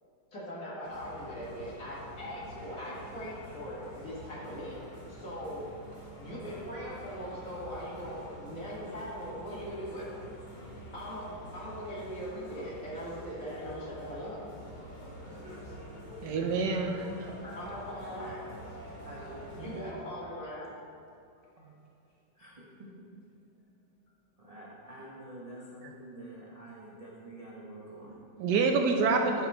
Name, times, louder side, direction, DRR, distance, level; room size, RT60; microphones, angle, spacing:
voice 1, 0.3-4.8 5.1-5.6 6.2-10.2 10.9-14.4 17.4-18.4 19.6-20.7, equal, 50° left, -7 dB, 2.2 m, -40 dB
sound 1, 0.8-19.9, equal, 30° left, 1.1 m, -46 dB
voice 2, 16.2-17.3 25.8-25.9 28.4-29.5, right 4 dB, 75° right, 3 dB, 1.1 m, -27 dB
voice 3, 19.0-19.6 21.4-21.7 22.3-22.9 24.4-28.2, right 1 dB, 30° right, -6 dB, 0.7 m, -47 dB
10.5 x 4.1 x 4.2 m, 2.6 s
omnidirectional pair, 1.9 m